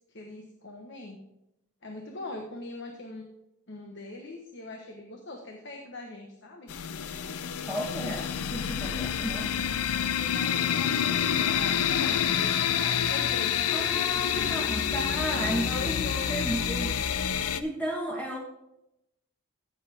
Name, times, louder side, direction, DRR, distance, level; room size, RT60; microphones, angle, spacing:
voice 1, 0.1-1.2 1.8-3.3 3.7-6.7 10.1-14.8 15.1-16.5, left 2 dB, 55° left, 2 dB, 1.2 m, -42 dB
sound 1, 6.7-17.6, left 8 dB, 80° left, 0.6 m, -28 dB
voice 2, 7.6-9.5 13.7-17.0 17.4-18.4, equal, 5° left, -1 dB, 1.2 m, -34 dB
15.0 x 7.1 x 3.5 m, 0.86 s
head